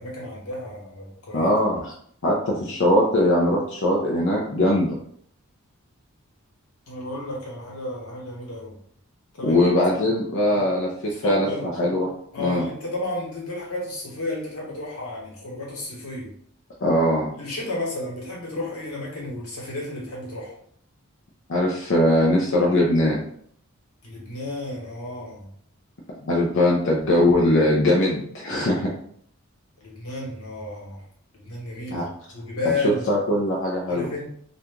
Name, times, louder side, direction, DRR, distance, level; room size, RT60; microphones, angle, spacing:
voice 1, 0.0-1.5 6.9-8.8 9.4-9.6 10.0-10.1 10.5-10.6 11.1-11.7 12.3-16.3 17.4-20.5 24.0-25.5 29.8-31.0 31.3-32.1 32.3-33.1 33.9-34.3, left 2 dB, 85° left, -3 dB, 1.2 m, -32 dB
voice 2, 1.3-1.9 2.2-4.9 9.4-11.5 11.8-12.1 12.4-12.6 16.8-17.3 21.5-23.2 26.2-28.9 31.9-32.0 32.8-34.1, left 1 dB, 55° left, -3 dB, 0.5 m, -21 dB
2.8 x 2.4 x 3.5 m, 0.64 s
head